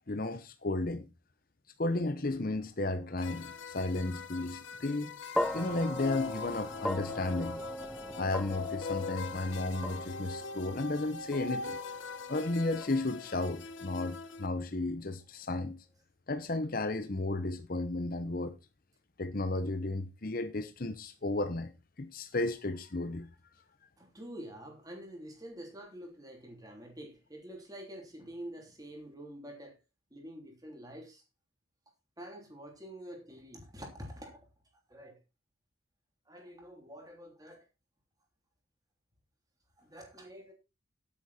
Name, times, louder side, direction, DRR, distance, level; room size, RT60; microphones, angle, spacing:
voice 1, 0.1-1.1 1.8-5.1 5.5-7.6 8.2-11.8 12.3-15.8 16.3-18.5 19.2-21.7 22.0-23.3, left 2 dB, 45° left, 0.8 m, -33 dB
sound 1, 3.2-14.5, left 5 dB, 70° left, 1.0 m, -42 dB
sound 2, 5.3-13.7, equal, 5° left, 0.5 m, -40 dB
voice 2, 24.0-29.8 30.1-31.2 32.2-34.4 34.9-35.2 36.3-37.6 39.8-40.5, equal, 20° right, 3.2 m, -47 dB
10.0 x 8.8 x 4.3 m
head